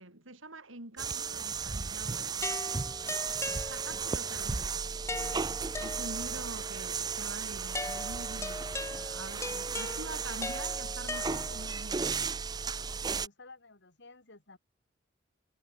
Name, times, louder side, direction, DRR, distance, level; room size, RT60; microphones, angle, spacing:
voice 1, 0.0-2.8 3.6-12.2, right 2 dB, 75° right, 6.6 m, -46 dB
sound 1, 1.0-13.3, right 5 dB, 20° right, 0.5 m, -35 dB
sound 2, 2.4-4.2 5.1-6.5 7.7-11.8, left 2 dB, 15° left, 1.7 m, -40 dB
voice 2, 4.0-4.5 9.3-10.5 13.0-14.6, left 3 dB, 60° left, 4.5 m, -54 dB
head